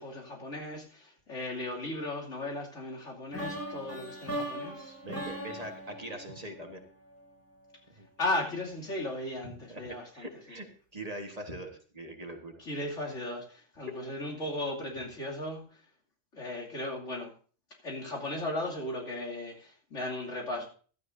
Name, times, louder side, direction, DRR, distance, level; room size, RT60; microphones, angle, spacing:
voice 1, 0.0-5.0 8.2-10.3 12.6-15.8 16.3-17.3 17.8-20.7, left 1 dB, 85° left, -2 dB, 3.1 m, -36 dB
sound 1, 3.3-7.3, equal, 10° left, 2.7 m, -39 dB
voice 2, 5.0-6.8 8.0-8.1 9.7-12.6 13.9-14.0, right 1 dB, 35° right, 4 dB, 1.6 m, -42 dB
15.5 x 12.0 x 2.7 m, 0.41 s
omnidirectional pair, 1.2 m